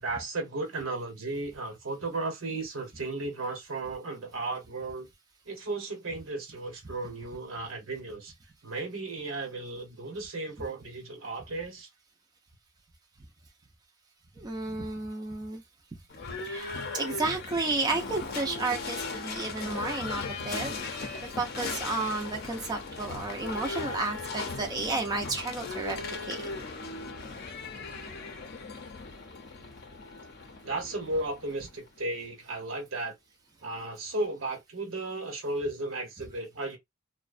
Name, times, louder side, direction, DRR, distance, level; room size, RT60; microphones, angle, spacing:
voice 1, 0.0-5.1 5.5-8.3 8.6-11.9 30.6-33.1 33.6-36.8, right 2 dB, 75° right, 1.0 m, -35 dB
voice 2, 14.4-15.6 16.4-20.8 21.4-26.0 26.3-26.5, right 3 dB, 20° right, 0.4 m, -32 dB
Livestock farm animals working animals / Bell, 16.1-32.0, left 3 dB, 50° left, 0.5 m, -38 dB
2.4 x 2.1 x 2.4 m
head